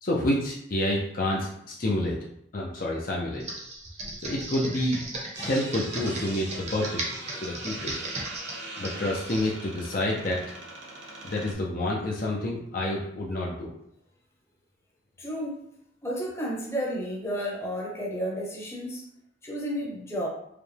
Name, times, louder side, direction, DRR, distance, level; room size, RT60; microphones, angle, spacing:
voice 1, 0.0-2.2 2.5-3.4 4.2-5.0 5.4-6.9 7.4-8.0 8.8-10.4 11.2-13.7, left 1 dB, 45° left, -3 dB, 0.6 m, -28 dB
Computer keyboard, 3.4-9.5, right 2 dB, 35° right, 0.8 m, -36 dB
sound 1, 5.3-11.5, right 2 dB, 60° right, 0.9 m, -41 dB
voice 2, 15.2-15.6 16.0-19.0 19.4-20.3, equal, 15° left, -4 dB, 0.8 m, -32 dB
4.9 x 2.2 x 3.3 m, 0.73 s
head